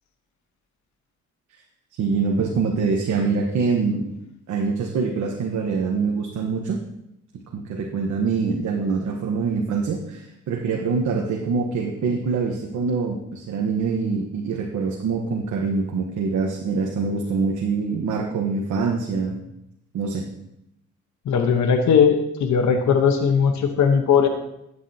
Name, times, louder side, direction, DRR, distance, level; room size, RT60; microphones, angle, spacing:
voice 1, 1.9-4.1 4.5-6.8 7.5-19.4 19.9-20.3, right 4 dB, 75° right, 0 dB, 1.2 m, -24 dB
voice 2, 21.2-24.3, left 6 dB, 75° left, 6 dB, 1.1 m, -18 dB
12.0 x 8.4 x 2.8 m, 0.82 s
cardioid pair, 80°, 29 cm